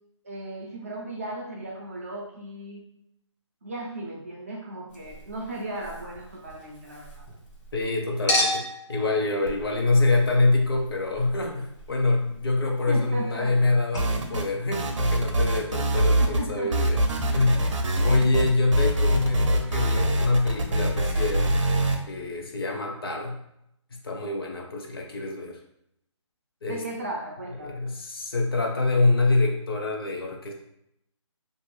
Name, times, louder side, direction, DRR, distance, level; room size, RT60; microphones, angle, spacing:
voice 1, 0.2-2.8 3.6-7.2 12.9-13.5 16.2-16.8 26.7-27.8, right 1 dB, 30° right, -2 dB, 0.4 m, -36 dB
Chink clink, 4.9-7.8 8.3-13.7 13.9-14.0, left 1 dB, 70° left, 1.3 m, -34 dB
voice 2, 7.7-8.6 8.9-17.0 17.3-17.7 18.0-21.6 22.1-23.4 24.0-25.6 26.6-26.8 27.6-30.5, left 2 dB, 50° left, 1 dB, 0.6 m, -25 dB
sound 1, 14.0-14.5 14.7-16.4 16.7-22.0, right 1 dB, 75° right, 0.6 m, -24 dB
2.5 x 2.4 x 3.1 m, 0.78 s
hypercardioid pair, 170°, 16 cm